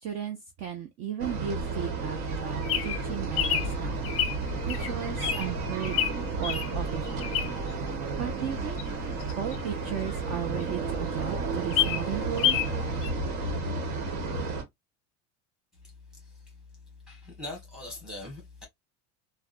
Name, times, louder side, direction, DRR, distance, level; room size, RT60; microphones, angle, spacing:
voice 1, 0.0-4.1 4.7-6.0 6.4-7.3 7.7-7.9 8.2-8.8 9.3-12.6, right 9 dB, 40° right, 0.6 m, -35 dB
sound 1, 1.2-14.6, right 3 dB, 60° right, 1.4 m, -32 dB
Bird vocalization bird call bird song, 2.3-7.8 8.2-10.3 10.7-10.8 11.1-11.2 11.5-12.7 13.0-13.1, left 10 dB, 35° left, 0.6 m, -29 dB
voice 2, 17.1-18.7, left 2 dB, ahead, 1.5 m, -41 dB
3.5 x 2.2 x 2.5 m
cardioid pair, 160°, 42 cm